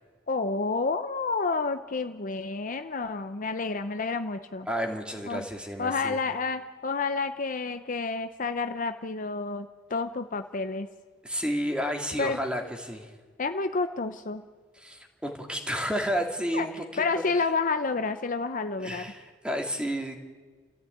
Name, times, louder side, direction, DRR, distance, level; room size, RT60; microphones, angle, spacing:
voice 1, 0.3-4.7 5.3-5.4 5.8-10.9 12.2-12.4 13.4-14.4 16.5-16.7 17.0-19.0, left 4 dB, 45° left, 9 dB, 0.8 m, -29 dB
voice 2, 4.7-6.2 11.2-13.1 14.7-17.5 18.8-20.2, equal, 5° right, 3 dB, 2.5 m, -31 dB
29.5 x 14.5 x 9.3 m, 1.5 s
head